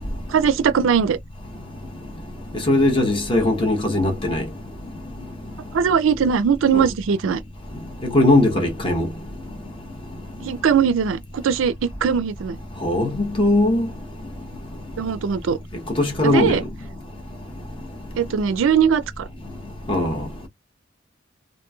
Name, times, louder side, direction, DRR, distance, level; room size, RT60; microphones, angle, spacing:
voice 1, 0.3-1.2 5.7-7.4 10.4-12.6 15.0-15.6 16.2-16.6 18.2-19.3, right 7 dB, 80° right, 0.4 m, -20 dB
voice 2, 2.7-4.4 6.7-6.8 8.0-9.1 12.8-13.9 16.0-16.6 19.9-20.2, left 2 dB, 25° left, 0.8 m, -19 dB
3.0 x 2.5 x 2.3 m
head